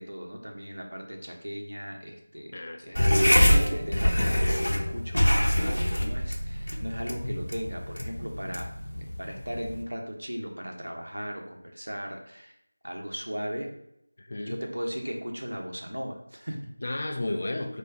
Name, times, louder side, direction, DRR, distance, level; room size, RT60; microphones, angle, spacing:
voice 1, 0.0-2.5 2.8-5.6 5.8-12.5 12.8-13.7 14.4-16.7, equal, 75° right, 2 dB, 1.1 m, -37 dB
voice 2, 2.5-3.1 14.2-14.6 16.8-17.8, left 2 dB, 40° left, 4 dB, 0.5 m, -33 dB
sound 1, 2.9-9.8, equal, 80° left, 1.0 m, -25 dB
4.4 x 2.5 x 4.6 m, 0.78 s
figure-of-eight pair, 170°, 0 cm